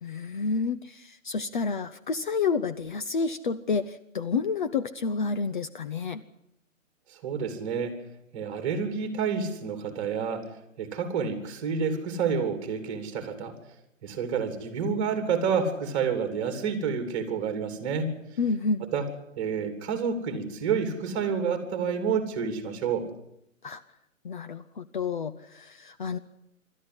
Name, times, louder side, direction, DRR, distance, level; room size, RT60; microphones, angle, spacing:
voice 1, 0.0-6.2 18.4-18.8 23.6-23.8 24.2-26.2, left 4 dB, 40° left, 11 dB, 0.8 m, -29 dB
voice 2, 7.2-8.0 8.3-10.5 10.8-13.6 14.0-18.1 18.8-19.1 19.4-23.1, right 6 dB, 25° right, 7 dB, 3.2 m, -29 dB
26.0 x 13.0 x 9.7 m, 0.79 s
hypercardioid pair, 155°, 39 cm